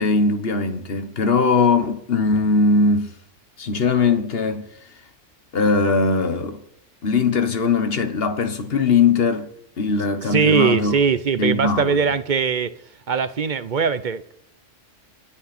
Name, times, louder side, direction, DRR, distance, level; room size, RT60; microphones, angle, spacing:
voice 1, 0.0-3.1 3.6-4.7 5.5-6.6 7.0-9.5 9.8-10.9 11.4-12.0, left 4 dB, 55° left, 1.5 m, -20 dB
voice 2, 10.3-12.7 13.1-14.3, right 6 dB, 45° right, 0.8 m, -20 dB
27.0 x 9.6 x 4.4 m
omnidirectional pair, 1.3 m